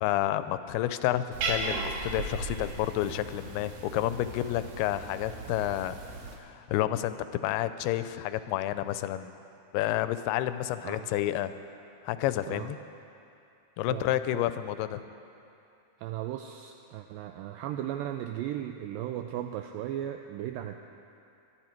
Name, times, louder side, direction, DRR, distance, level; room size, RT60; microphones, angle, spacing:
voice 1, 0.0-6.0 6.4-9.3 9.7-11.5 12.0-12.8 13.8-15.0, left 13 dB, 90° left, 12 dB, 2.5 m, -30 dB
Cat, 1.3-6.4, right 3 dB, 70° right, 2.7 m, -36 dB
voice 2, 13.9-14.4 16.0-20.8, right 11 dB, 85° right, 6 dB, 2.0 m, -36 dB
21.5 x 11.5 x 4.5 m, 2.6 s
omnidirectional pair, 4.5 m